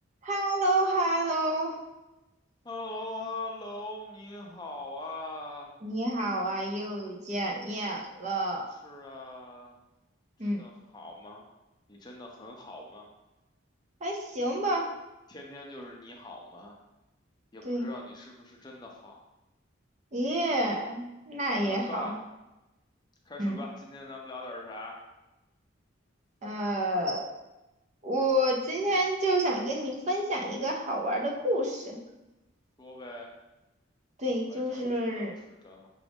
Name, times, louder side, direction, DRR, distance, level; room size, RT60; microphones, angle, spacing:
voice 1, 0.2-1.8 5.8-8.7 10.4-10.7 14.0-14.9 17.6-17.9 20.1-22.1 23.4-23.6 26.4-27.3 28.0-32.0 34.2-35.3, right 1 dB, 35° right, 1 dB, 0.6 m, -29 dB
voice 2, 2.6-5.7 8.8-9.7 10.4-11.5 11.9-13.1 15.3-16.8 17.5-19.2 21.6-22.2 23.2-25.0 32.8-33.3 34.5-35.9, left 2 dB, 20° left, 0 dB, 0.5 m, -42 dB
6.0 x 2.5 x 3.4 m, 1.0 s
head